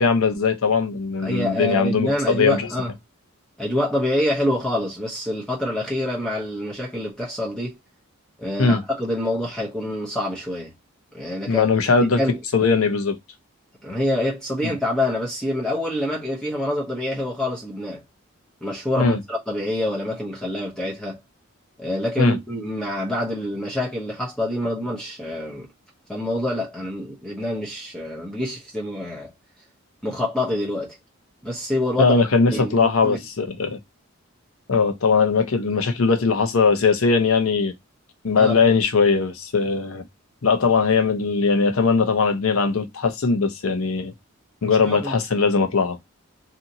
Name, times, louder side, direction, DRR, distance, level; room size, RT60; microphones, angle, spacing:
voice 1, 0.0-2.7 8.6-8.8 11.5-12.2 12.5-13.2 14.6-14.8 19.0-19.2 22.2-22.4 32.0-33.8 34.7-37.7 38.2-40.0 40.4-44.1 44.6-46.0, left 4 dB, 75° left, 0.6 m, -20 dB
voice 2, 1.2-2.9 3.6-7.8 8.4-10.7 11.1-11.7 12.2-12.4 13.8-18.0 18.6-21.2 21.8-25.7 26.1-29.3 30.0-31.0 31.4-32.1 32.5-33.2 38.4-38.6 44.6-45.2, left 1 dB, 5° left, 0.7 m, -26 dB
2.8 x 2.6 x 2.6 m
head